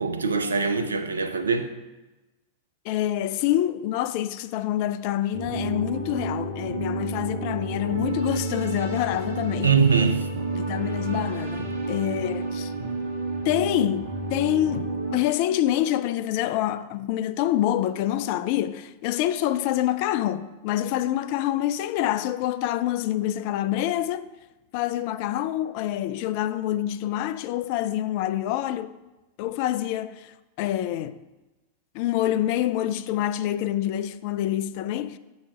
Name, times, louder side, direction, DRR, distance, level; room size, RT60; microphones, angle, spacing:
voice 1, 0.0-1.7 9.6-10.3, right 5 dB, 75° right, 0.6 m, -22 dB
voice 2, 2.8-9.7 10.5-12.7 13.4-24.3 24.7-28.9 29.4-31.2 31.9-35.2, left 12 dB, 45° left, 0.3 m, -26 dB
sound 1, 5.3-15.2, right 2 dB, 55° right, 1.0 m, -30 dB
7.1 x 4.1 x 5.0 m
figure-of-eight pair, 90°, 0 cm